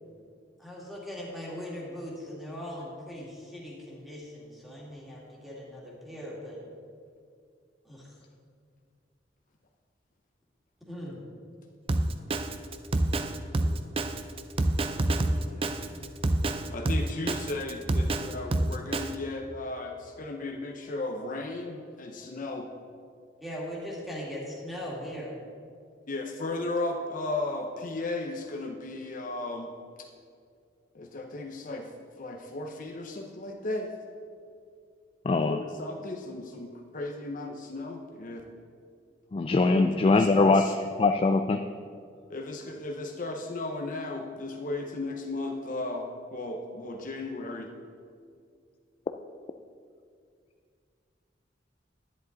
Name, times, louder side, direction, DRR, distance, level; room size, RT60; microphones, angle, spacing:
voice 1, 0.6-6.6 7.8-8.1 10.8-11.2 15.9-16.2 23.4-25.3, equal, ahead, -5 dB, 2.3 m, -40 dB
Drum kit, 11.9-19.1, right 1 dB, 30° right, 0.5 m, -27 dB
voice 2, 15.5-15.8 16.7-22.7 26.1-29.7 30.0-30.1 30.9-31.9 32.2-33.9 35.4-38.5 39.6-40.7 42.3-47.7, left 2 dB, 45° left, 3 dB, 0.7 m, -35 dB
voice 3, 35.2-35.6 39.3-40.6 41.0-41.6, left 3 dB, 30° left, 6 dB, 0.3 m, -22 dB
10.5 x 10.5 x 4.0 m, 2.3 s
head